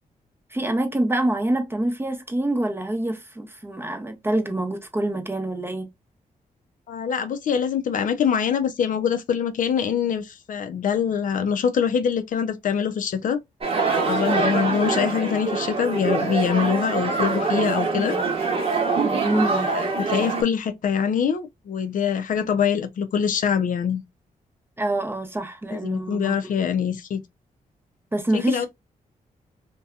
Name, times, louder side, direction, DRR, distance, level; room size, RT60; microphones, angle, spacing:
voice 1, 0.5-5.9 14.3-14.7 19.0-19.7 24.8-26.4 28.1-28.7, right 1 dB, 15° right, 0.7 m, -26 dB
voice 2, 6.9-13.4 13.9-18.2 19.5-24.0 25.7-27.2 28.3-28.7, left 7 dB, 65° left, 0.5 m, -24 dB
sound 1, 13.6-20.4, right 4 dB, 40° right, 0.9 m, -24 dB
2.7 x 2.2 x 2.4 m
cardioid pair, 85°, 15 cm